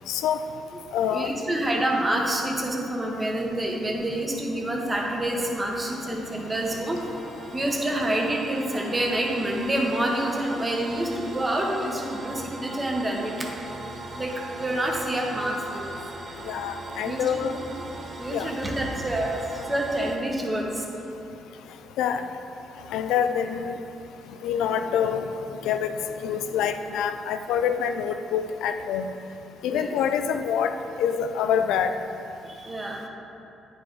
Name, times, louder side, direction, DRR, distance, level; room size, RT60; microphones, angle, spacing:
voice 1, 0.1-0.4 0.9-1.3 16.5-17.6 18.3-18.5 22.0-22.2 22.9-23.7 24.4-25.3 25.6-25.9 26.2-29.1 29.6-31.9, left 8 dB, 90° left, 8 dB, 0.3 m, -26 dB
voice 2, 1.1-7.0 7.5-13.5 14.1-15.9 17.0-17.5 18.2-19.4 19.7-20.8 29.7-29.9 32.4-33.0, right 1 dB, 20° right, -1 dB, 1.2 m, -27 dB
sound 1, 5.2-20.2, right 2 dB, 40° right, 0.7 m, -40 dB
9.4 x 4.8 x 3.9 m, 2.8 s
cardioid pair, 90°, 0 cm